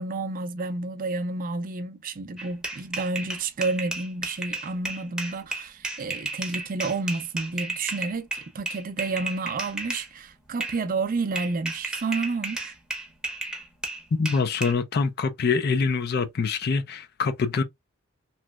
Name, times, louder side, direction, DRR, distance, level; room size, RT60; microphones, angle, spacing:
voice 1, 0.0-12.7, right 3 dB, 40° right, 0.4 m, -30 dB
sound 1, 2.4-10.1 10.6-10.8 11.3-14.7, right 2 dB, 5° right, 0.7 m, -33 dB
voice 2, 14.2-17.6, left 5 dB, 45° left, 0.4 m, -25 dB
3.0 x 3.0 x 2.2 m
head